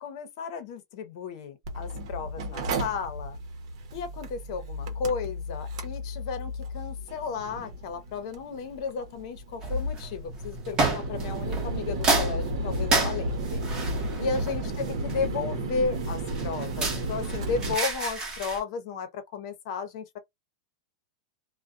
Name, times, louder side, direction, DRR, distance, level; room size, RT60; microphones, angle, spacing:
voice 1, 0.0-3.4 3.9-13.6 14.2-20.2, left 5 dB, 55° left, 0.8 m, -34 dB
Mechanical fan, 1.7-17.7, right 1 dB, 65° right, 0.8 m, -33 dB
sound 1, 9.6-10.1 10.8-11.7 12.0-15.4 16.0-18.6, right 3 dB, 25° right, 1.0 m, -29 dB
2.3 x 2.2 x 2.5 m
supercardioid pair, 150°, 3 cm